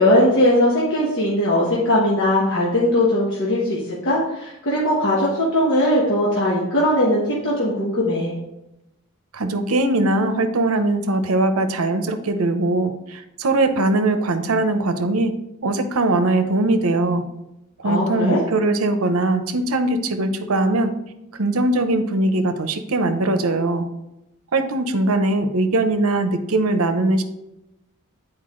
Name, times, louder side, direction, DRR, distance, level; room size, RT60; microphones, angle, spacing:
voice 1, 0.0-8.4 17.8-18.4, left 1 dB, 55° left, -5 dB, 1.3 m, -19 dB
voice 2, 9.3-15.3 15.6-17.3 17.8-20.9 21.4-23.8 24.5-27.2, right 2 dB, 70° right, 8 dB, 0.7 m, -21 dB
8.7 x 4.6 x 3.7 m, 0.90 s
head